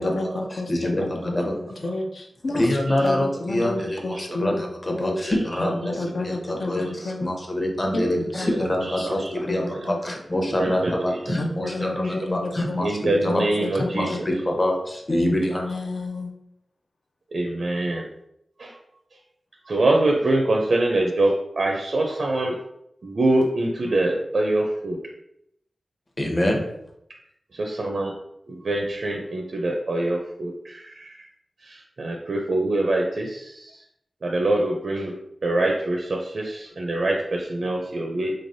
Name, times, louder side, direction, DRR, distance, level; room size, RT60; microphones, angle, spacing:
voice 1, 0.0-5.2 5.6-7.4 7.9-9.1 9.5-10.0 11.4-12.8 13.2-14.2 15.1-16.3, left 2 dB, 70° left, 3 dB, 0.5 m, -30 dB
voice 2, 0.5-1.6 2.5-13.4 13.7-15.7 26.2-26.6, left 1 dB, 30° left, 1 dB, 0.8 m, -26 dB
voice 3, 10.6-11.3 12.0-12.1 12.8-14.1 17.3-18.0 18.6-18.7 19.7-22.5 23.0-25.0 27.5-28.1 28.5-31.2 31.6-33.7 34.2-35.1 35.4-38.3, right 2 dB, 65° right, 1 dB, 0.5 m, -24 dB
3.8 x 3.2 x 2.6 m, 0.77 s
wide cardioid pair, 80°, 0 cm